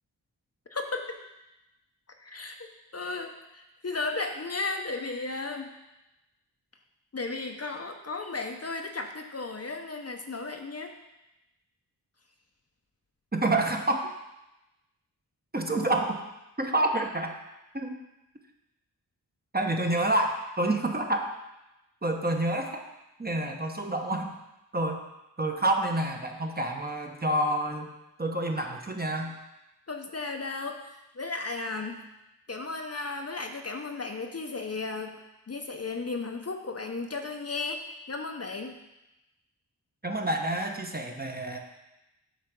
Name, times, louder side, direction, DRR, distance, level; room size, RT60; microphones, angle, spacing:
voice 1, 0.7-1.2 2.2-5.7 7.1-11.0 29.9-32.0 32.5-35.2 35.5-38.8, left 3 dB, 40° left, 4 dB, 0.8 m, -35 dB
voice 2, 13.3-14.1 15.5-16.2 16.6-17.3 17.7-18.0 19.5-21.3 22.0-22.8 23.2-24.3 24.7-25.0 25.4-27.9 28.2-29.4 40.0-41.6, right 1 dB, 25° right, 2 dB, 1.0 m, -28 dB
8.3 x 3.4 x 6.0 m, 0.95 s
cardioid pair, 45°, 40 cm